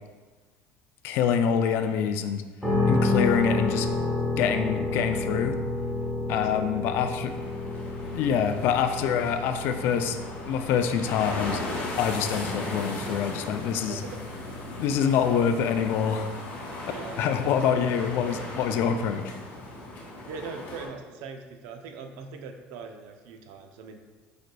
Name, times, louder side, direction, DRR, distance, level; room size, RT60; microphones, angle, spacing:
voice 1, 1.0-2.4 2.9-3.9 4.4-5.6 6.3-7.3 8.1-10.2 10.5-11.6 12.0-14.0 14.8-16.3 17.2-19.2, left 7 dB, 55° left, 8 dB, 0.3 m, -25 dB
sound 1, 2.6-18.5, left 2 dB, 5° right, 0.9 m, -32 dB
voice 2, 6.3-6.9 13.9-14.2 16.9-17.5 20.2-24.0, right 5 dB, 70° right, 5 dB, 0.5 m, -41 dB
sound 2, 7.3-20.9, left 1 dB, 40° left, 0.9 m, -37 dB
5.0 x 4.3 x 2.2 m, 1.3 s
cardioid pair, 170°, 5 cm